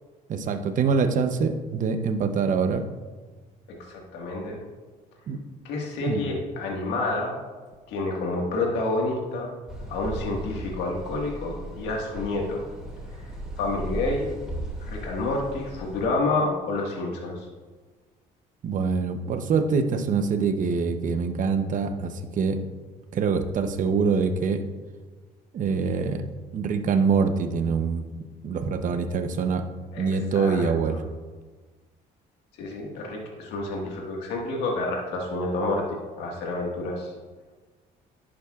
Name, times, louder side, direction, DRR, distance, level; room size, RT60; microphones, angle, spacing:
voice 1, 0.3-2.8 5.3-5.4 6.1-6.3 18.6-22.6 23.1-24.6 25.5-26.2 26.5-28.0 28.4-29.6 30.0-31.0, right 5 dB, 50° right, 8 dB, 0.8 m, -24 dB
voice 2, 3.9-4.6 5.6-7.4 7.9-9.5 9.9-12.6 13.6-14.3 14.9-17.5 29.9-30.1 30.3-31.0 32.6-35.9 36.2-37.1, left 2 dB, 90° left, -1 dB, 1.7 m, -29 dB
sound 1, 9.7-16.1, equal, 5° right, 2.3 m, -37 dB
11.0 x 8.6 x 2.4 m, 1.4 s
cardioid pair, 110°, 17 cm